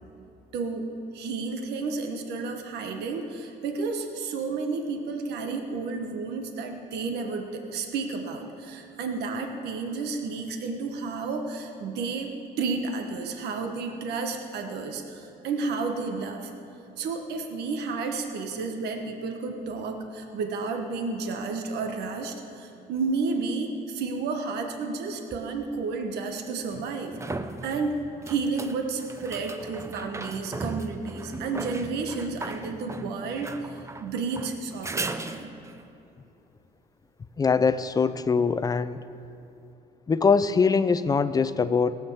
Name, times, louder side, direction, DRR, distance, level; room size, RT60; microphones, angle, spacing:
voice 1, 0.5-12.3 12.6-16.5 17.0-27.2 27.6-28.0 28.2-33.5 34.0-35.5, right 4 dB, 75° right, 4 dB, 1.3 m, -31 dB
sound 1, 25.3-25.4 26.7-35.8 39.2-39.3, right 2 dB, 15° right, 0.7 m, -37 dB
voice 2, 37.4-39.0 40.1-42.0, left 5 dB, 20° left, 14 dB, 0.5 m, -22 dB
17.5 x 7.2 x 7.2 m, 2.6 s
cardioid pair, 110°, 17 cm